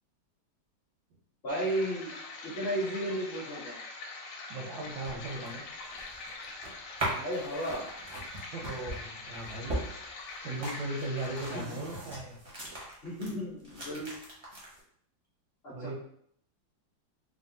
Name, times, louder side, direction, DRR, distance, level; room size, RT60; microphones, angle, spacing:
voice 1, 1.4-2.1 2.4-3.8 7.1-7.9 10.4-10.7 11.5-11.8 13.0-14.1 15.6-15.9, right 1 dB, 50° left, -6 dB, 0.8 m, -34 dB
sound 1, 1.5-11.6, left 3 dB, 80° left, 1.2 m, -44 dB
voice 2, 4.5-5.7 8.5-12.4 15.7-15.9, right 2 dB, 85° right, 1 dB, 1.4 m, -38 dB
sound 2, 4.8-13.3 13.6-14.8, right 1 dB, 45° right, 0.4 m, -40 dB
3.4 x 2.1 x 2.6 m, 0.66 s
omnidirectional pair, 2.0 m